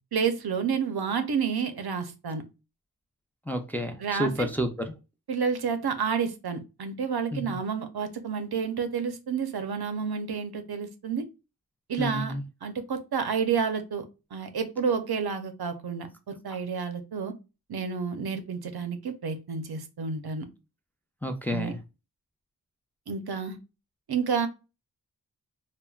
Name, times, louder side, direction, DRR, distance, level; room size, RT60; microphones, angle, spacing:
voice 1, 0.1-2.4 4.0-4.5 5.3-11.2 11.9-12.3 12.6-14.0 14.3-17.3 17.7-20.5 21.5-21.7 23.1-23.6 24.1-24.5, right 6 dB, 80° right, 0.5 m, -30 dB
voice 2, 3.5-4.9 7.3-7.4 12.0-12.4 21.2-21.8, equal, 5° left, 0.4 m, -30 dB
3.2 x 2.1 x 2.3 m
wide cardioid pair, 45°, 38 cm